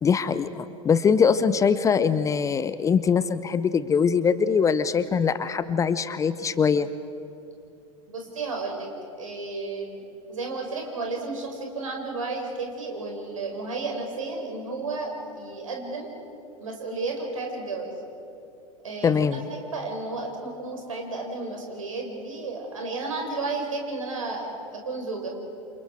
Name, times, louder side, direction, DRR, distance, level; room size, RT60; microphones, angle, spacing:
voice 1, 0.0-6.9 19.0-19.4, left 6 dB, 20° left, 14 dB, 0.7 m, -22 dB
voice 2, 8.1-8.9 9.2-10.0 10.3-16.1 16.6-18.0 18.8-19.4 19.7-25.3, right 3 dB, 70° right, 1 dB, 4.9 m, -32 dB
28.5 x 27.0 x 4.7 m, 2.7 s
figure-of-eight pair, 85°, 18 cm